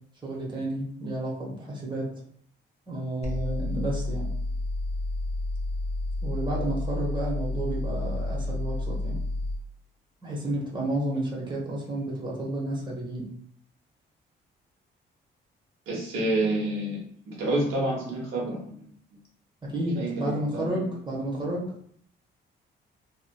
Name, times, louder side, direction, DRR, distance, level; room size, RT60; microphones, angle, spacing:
voice 1, 0.2-2.1 2.9-4.3 6.2-9.2 10.2-13.3 19.6-21.7, right 1 dB, 25° right, -4 dB, 1.1 m, -31 dB
sound 1, 3.2-9.6, left 2 dB, 35° left, 0.8 m, -30 dB
voice 2, 15.9-17.0 17.3-18.9 20.0-20.8, right 2 dB, 90° right, -3 dB, 1.0 m, -28 dB
2.8 x 2.4 x 2.2 m, 0.63 s
cardioid pair, 90°, 20 cm